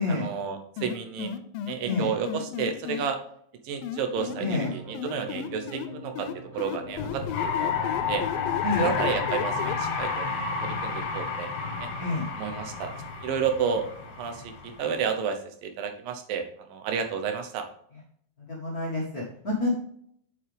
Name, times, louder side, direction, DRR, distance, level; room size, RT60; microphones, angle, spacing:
voice 1, 0.0-1.3 1.7-3.2 3.6-6.3 6.5-8.2 8.8-11.5 11.8-11.9 12.4-12.9 13.2-13.9 14.2-17.7, right 6 dB, 75° right, 6 dB, 2.6 m, -31 dB
sound 1, 0.8-3.0 3.8-5.9 6.2-9.7, left 10 dB, 85° left, 2.4 m, -34 dB
sound 2, 4.1-9.6, left 2 dB, 30° right, 2.3 m, -42 dB
voice 2, 4.4-4.7 8.6-8.9 12.0-12.3 18.5-19.7, left 3 dB, 40° left, -5 dB, 1.4 m, -28 dB
sound 3, 7.0-15.0, left 6 dB, 60° left, 2.3 m, -31 dB
7.8 x 7.5 x 3.4 m, 0.67 s
omnidirectional pair, 4.2 m